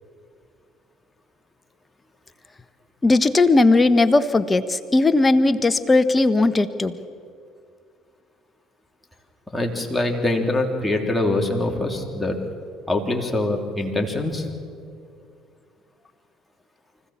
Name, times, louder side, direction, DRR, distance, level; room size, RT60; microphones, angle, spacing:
voice 1, 3.0-6.9, left 2 dB, 20° left, 11 dB, 1.2 m, -17 dB
voice 2, 9.5-12.4 12.9-14.5, left 2 dB, 5° left, 1 dB, 3.4 m, -24 dB
25.0 x 15.0 x 7.4 m, 2.3 s
hypercardioid pair, 60°, 0 cm